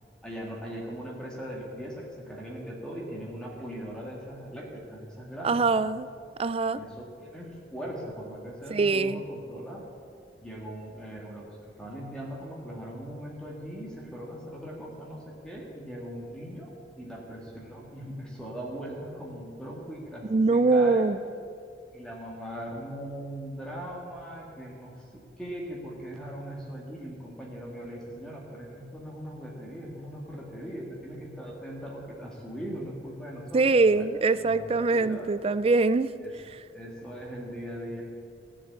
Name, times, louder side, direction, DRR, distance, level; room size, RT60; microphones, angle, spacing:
voice 1, 0.2-5.7 6.8-9.8 10.4-21.1 21.9-35.3 36.2-36.3 36.7-38.0, equal, 5° left, -3 dB, 1.9 m, -40 dB
voice 2, 5.4-6.1 6.4-6.8 8.7-9.2 20.3-21.2 33.5-36.1, right 3 dB, 35° right, 15 dB, 0.4 m, -23 dB
15.5 x 7.4 x 8.5 m, 2.4 s
head